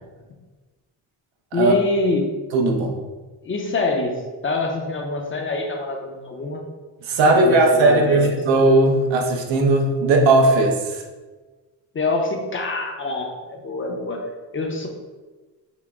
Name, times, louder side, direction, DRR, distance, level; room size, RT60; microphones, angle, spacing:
voice 1, 1.5-2.3 3.4-6.6 7.2-8.4 11.9-14.3 14.5-14.9, left 2 dB, 30° left, 3 dB, 0.5 m, -25 dB
voice 2, 2.5-3.0 7.0-11.0, right 2 dB, 85° right, 3 dB, 0.8 m, -17 dB
5.9 x 2.0 x 3.5 m, 1.3 s
cardioid pair, 125°, 43 cm